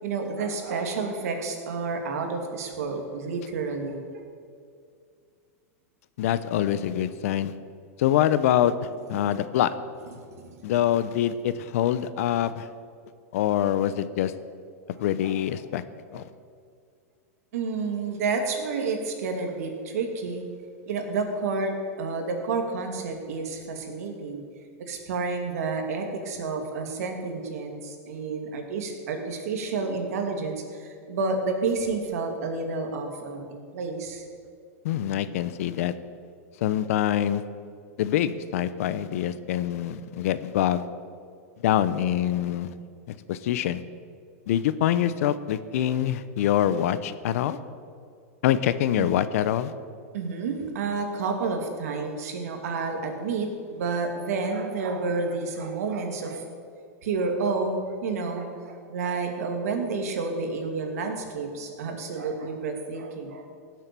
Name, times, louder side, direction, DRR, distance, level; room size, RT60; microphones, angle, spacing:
voice 1, 0.0-4.0 15.2-15.3 17.5-20.4 20.9-21.7 22.0-24.4 24.9-34.2 49.0-49.1 50.1-56.4 57.0-63.4, right 4 dB, 75° right, 4 dB, 2.5 m, -30 dB
voice 2, 6.2-7.5 8.0-8.7 9.1-9.7 10.6-12.7 13.3-14.3 15.0-15.8 16.1-16.2 34.8-35.9 36.6-37.4 38.0-40.8 41.6-42.7 43.3-43.8 44.5-47.6 48.4-49.7, left 11 dB, 65° left, 14 dB, 0.8 m, -25 dB
17.0 x 7.7 x 6.9 m, 2.3 s
hypercardioid pair, 130°, 8 cm